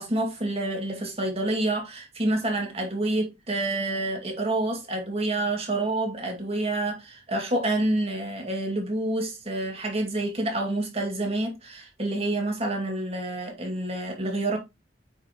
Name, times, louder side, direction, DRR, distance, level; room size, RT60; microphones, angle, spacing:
voice 1, 0.0-14.6, right 2 dB, 35° right, 2.3 m, -28 dB
8.0 x 5.2 x 3.0 m
head